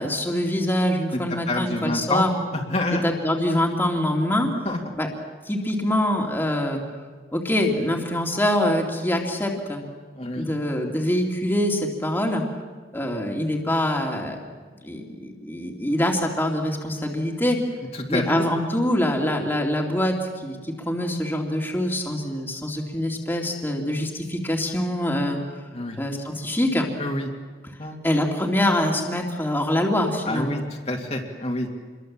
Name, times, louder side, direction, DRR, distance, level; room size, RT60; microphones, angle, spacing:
voice 1, 0.0-2.3 3.0-4.5 5.0-5.1 5.4-6.8 7.3-9.8 10.3-12.4 12.9-14.4 14.8-17.6 18.1-25.4 26.0-26.9 28.0-30.6, left 1 dB, 10° left, 0 dB, 2.6 m, -24 dB
voice 2, 1.1-2.3 2.7-3.0 4.6-4.8 10.2-10.5 17.9-18.3 25.7-26.0 27.0-27.3 27.8-28.0 30.2-30.6 30.9-31.7, left 1 dB, 35° left, 0 dB, 2.4 m, -27 dB
28.0 x 22.5 x 7.5 m, 1.5 s
head